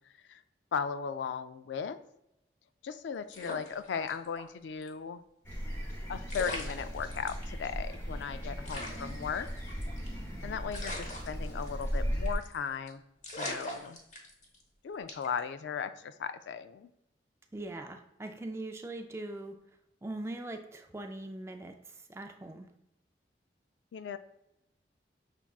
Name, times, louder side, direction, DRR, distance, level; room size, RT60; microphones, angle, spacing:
voice 1, 0.7-2.0 2.8-5.2 6.1-9.5 10.4-13.0 13.4-14.0 14.8-16.9 23.9-24.2, left 6 dB, 85° left, 11 dB, 0.3 m, -37 dB
sound 1, 3.3-4.5 4.8-4.9 5.9-6.0 6.3-7.4 7.9-8.0 8.2-8.3 8.7-10.2 10.7-12.0 12.3-12.6 12.9-13.0 13.2-14.6 15.1-15.4, left 1 dB, 45° left, 0.9 m, -41 dB
sound 2, 5.4-12.3, equal, 15° left, 0.8 m, -37 dB
voice 2, 17.5-19.6 20.0-22.7, right 2 dB, 15° right, 6 dB, 0.3 m, -41 dB
5.9 x 3.5 x 2.3 m, 0.82 s
head